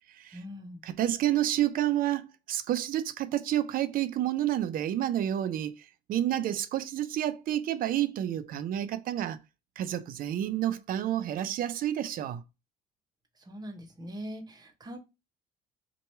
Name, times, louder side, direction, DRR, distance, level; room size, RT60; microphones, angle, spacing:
voice 1, 0.3-0.8 13.4-15.0, equal, 25° right, 0.8 m, -42 dB
voice 2, 0.9-9.4 9.8-12.4, right 12 dB, 55° right, 0.4 m, -29 dB
3.0 x 2.2 x 4.2 m
cardioid pair, 110°, 17 cm